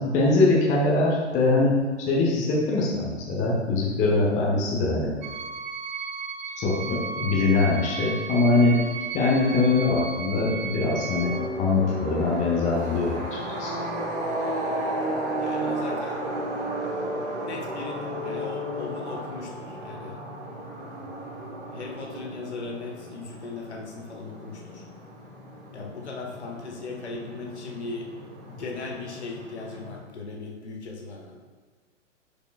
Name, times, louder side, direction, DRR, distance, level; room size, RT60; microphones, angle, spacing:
voice 1, 0.0-1.7 2.0-5.1 6.6-8.8 9.1-13.2 13.6-13.7, left 3 dB, 20° left, -3 dB, 1.0 m, -22 dB
sound 1, 5.2-11.5, right 5 dB, 40° right, 0.4 m, -34 dB
sound 2, 11.2-30.0, right 1 dB, 20° right, 1.1 m, -34 dB
voice 2, 15.4-16.2 17.2-20.2 21.7-24.8 25.7-28.1 28.4-31.4, left 3 dB, 60° left, 0 dB, 1.3 m, -38 dB
10.5 x 5.0 x 2.3 m, 1.4 s
figure-of-eight pair, 110°, 37 cm